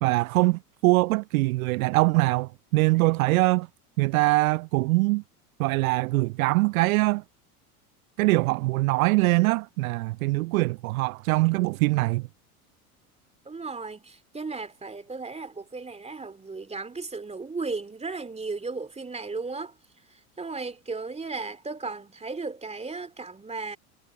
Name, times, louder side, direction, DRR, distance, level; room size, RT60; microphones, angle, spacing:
voice 1, 0.0-3.7 4.0-5.2 5.6-7.2 8.2-12.3, right 23 dB, 65° right, 0.6 m, -23 dB
voice 2, 13.4-19.7 20.4-23.8, right 4 dB, 15° right, 2.9 m, -35 dB
hypercardioid pair, 80°, 45 cm